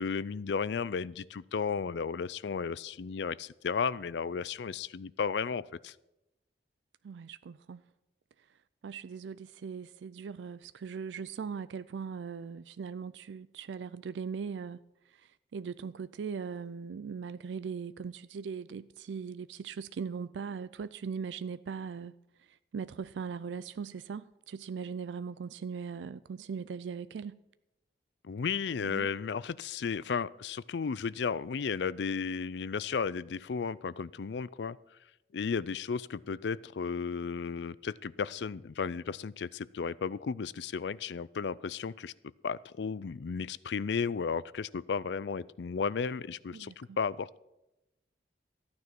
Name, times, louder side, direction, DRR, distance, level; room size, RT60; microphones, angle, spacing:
voice 1, 0.0-5.9 28.2-34.8 35.3-42.1 42.4-47.4, left 5 dB, 75° left, 0.4 m, -34 dB
voice 2, 7.0-7.8 8.8-14.8 15.1-22.1 22.4-27.4 28.8-29.1 46.5-47.0, right 6 dB, 85° right, 0.4 m, -40 dB
14.0 x 9.6 x 6.0 m
head